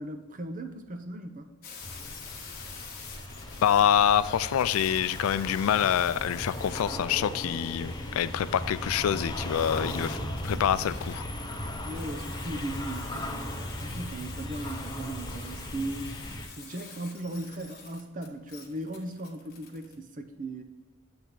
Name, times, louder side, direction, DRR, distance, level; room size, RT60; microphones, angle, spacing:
voice 1, 0.0-1.5 11.8-16.2 16.6-20.6, right 1 dB, 40° right, 6 dB, 0.7 m, -37 dB
sound 1, 1.6-20.0, left 5 dB, 45° left, 1.1 m, -47 dB
sound 2, 1.8-16.5, left 1 dB, 20° left, 0.7 m, -37 dB
voice 2, 3.6-10.2 10.4-11.3, left 9 dB, 80° left, 15 dB, 0.3 m, -26 dB
8.0 x 3.5 x 5.8 m, 1.2 s
head